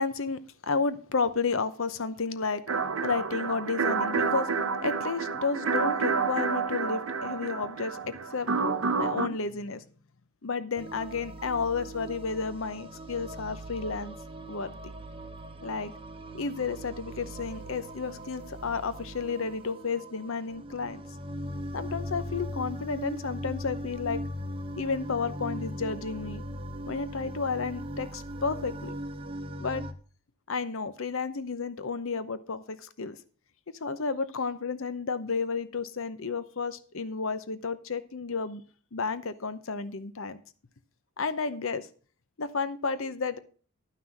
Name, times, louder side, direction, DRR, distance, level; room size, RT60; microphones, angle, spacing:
voice 1, 0.0-2.6 3.0-4.5 4.8-8.5 9.0-9.8 10.4-14.2 14.5-14.9 15.6-15.9 16.3-21.0 21.7-24.2 24.8-26.4 26.9-28.9 29.6-29.8 30.5-33.2 33.8-38.6 38.9-40.4 41.2-41.9 42.4-43.4, left 4 dB, 60° left, 13 dB, 0.8 m, -32 dB
sound 1, 2.7-9.3, right 5 dB, 65° right, 0.7 m, -29 dB
sound 2, 10.8-29.9, equal, 25° right, 0.9 m, -39 dB
11.5 x 5.9 x 5.9 m, 0.41 s
head